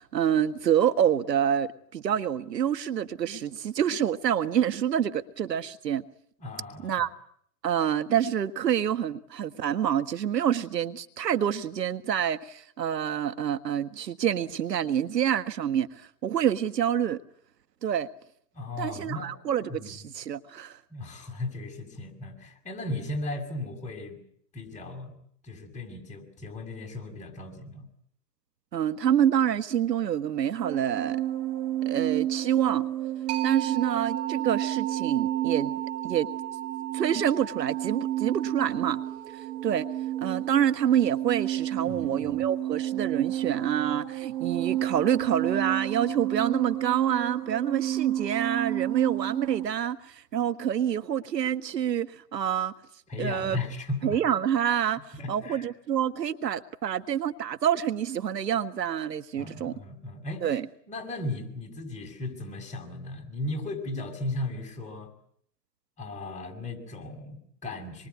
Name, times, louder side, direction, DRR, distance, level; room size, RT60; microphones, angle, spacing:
voice 1, 0.0-6.0 6.8-7.1 7.6-17.2 17.8-18.1 18.8-20.8 28.7-31.2 31.8-32.9 33.4-35.7 36.0-36.3 36.9-39.0 39.6-39.9 40.2-52.7 53.2-53.6 54.0-55.0 55.3-59.7 60.4-60.7, right 9 dB, 90° right, 1.7 m, -27 dB
voice 2, 6.4-7.1 18.5-19.3 19.7-20.0 20.9-24.2 24.5-25.2 25.4-27.9 41.8-42.4 53.1-54.2 55.2-55.7 59.4-60.6 60.9-65.1 66.0-68.1, left 2 dB, 15° left, 6.9 m, -36 dB
sound 1, 30.6-49.7, right 13 dB, 60° right, 7.7 m, -31 dB
sound 2, 33.3-42.7, right 13 dB, 35° right, 5.1 m, -38 dB
26.5 x 23.0 x 9.6 m
hypercardioid pair, 135°, 48 cm